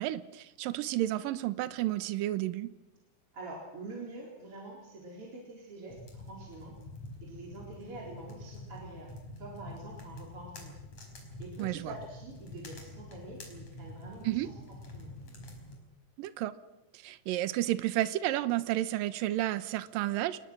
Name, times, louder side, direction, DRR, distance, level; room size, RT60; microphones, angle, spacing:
voice 1, 0.0-2.7 11.6-11.9 14.2-14.5 16.2-16.6 16.9-20.4, right 15 dB, 75° right, 13 dB, 2.6 m, -31 dB
voice 2, 3.3-6.8 7.2-10.8 11.4-15.2, right 2 dB, 35° right, -2 dB, 4.7 m, -46 dB
sound 1, 5.9-15.8, left 2 dB, 45° left, 6.0 m, -47 dB
28.5 x 21.0 x 6.3 m, 1.0 s
omnidirectional pair, 4.3 m